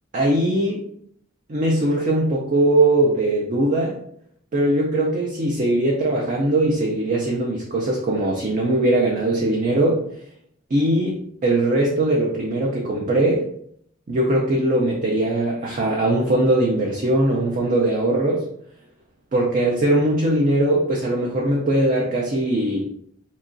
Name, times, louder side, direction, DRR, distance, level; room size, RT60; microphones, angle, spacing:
voice 1, 0.1-0.8 1.5-3.9 4.5-10.0 10.7-13.4 14.1-18.4 19.3-22.9, right 1 dB, 40° right, -3 dB, 0.4 m, -20 dB
2.8 x 2.4 x 2.5 m, 0.68 s
head